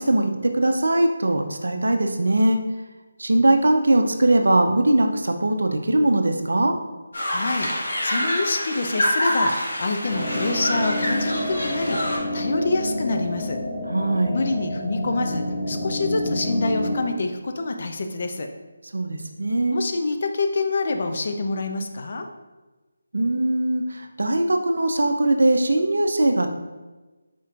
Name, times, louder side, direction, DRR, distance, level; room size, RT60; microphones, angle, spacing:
voice 1, 0.1-2.6 3.2-6.7 13.9-14.4 18.9-19.8 23.1-26.5, right 1 dB, 70° right, 5 dB, 0.5 m, -20 dB
sound 1, 7.1-12.2, equal, 70° left, 1.2 m, -26 dB
voice 2, 7.3-13.6 14.3-18.5 19.7-22.3, left 3 dB, 45° left, 5 dB, 0.4 m, -26 dB
sound 2, 10.1-17.0, left 1 dB, 5° left, 1.0 m, -28 dB
4.3 x 4.3 x 2.4 m, 1.2 s
figure-of-eight pair, 155°, 0 cm